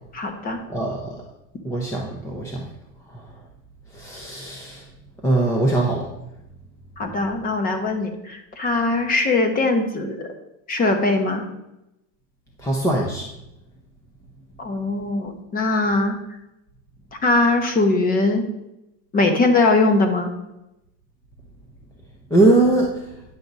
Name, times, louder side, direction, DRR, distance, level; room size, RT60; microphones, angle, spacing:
voice 1, 0.1-0.6 7.0-10.3 10.7-11.5 14.6-16.2 17.2-18.5 19.1-20.3, left 2 dB, 25° left, 5 dB, 1.0 m, -21 dB
voice 2, 0.7-1.1 1.6-2.6 3.9-4.8 5.2-6.1 12.6-13.2 22.3-22.9, right 2 dB, 10° left, -1 dB, 0.7 m, -21 dB
9.8 x 6.0 x 4.0 m, 0.89 s
cardioid pair, 175°, 37 cm